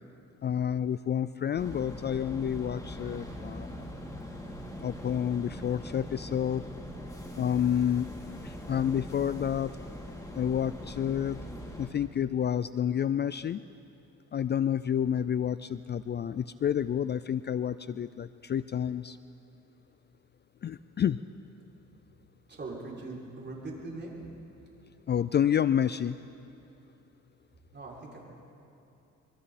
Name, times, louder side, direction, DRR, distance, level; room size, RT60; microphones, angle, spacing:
voice 1, 0.4-3.7 4.8-6.7 7.4-8.1 8.4-9.7 10.4-11.4 11.8-13.6 14.3-19.2 20.6-21.2 25.1-26.2, left 9 dB, 35° left, 15 dB, 0.4 m, -29 dB
sound 1, 1.6-11.9, equal, 10° left, 3.3 m, -42 dB
voice 2, 22.5-24.2 27.7-28.2, right 2 dB, 35° right, -5 dB, 6.2 m, -41 dB
27.0 x 23.5 x 4.3 m, 2.8 s
cardioid pair, 90°, 30 cm